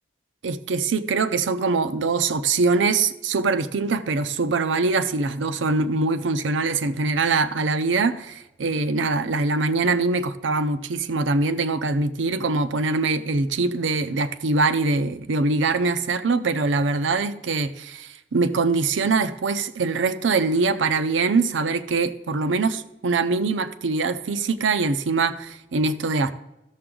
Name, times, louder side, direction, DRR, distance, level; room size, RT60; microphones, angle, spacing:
voice 1, 0.4-26.3, right 3 dB, 85° right, 0.6 m, -23 dB
13.5 x 6.9 x 3.8 m
head